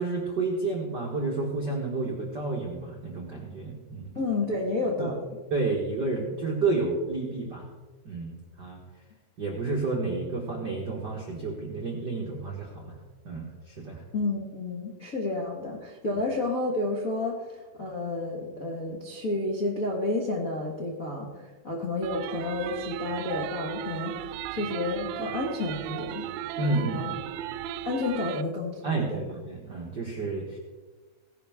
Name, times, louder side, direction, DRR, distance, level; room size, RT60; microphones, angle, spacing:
voice 1, 0.0-4.1 5.0-5.1 5.5-7.7 8.0-8.8 9.4-13.0 13.2-14.0 26.6-27.2 28.8-30.6, right 3 dB, 65° right, -1 dB, 1.0 m, -30 dB
voice 2, 4.1-5.2 14.1-24.2 24.5-26.3 26.6-27.1 27.8-29.2, left 2 dB, 75° left, -1 dB, 0.7 m, -31 dB
sound 1, 22.0-28.4, right 11 dB, 85° right, 2.2 m, -35 dB
17.5 x 11.0 x 3.6 m, 1.3 s
omnidirectional pair, 4.2 m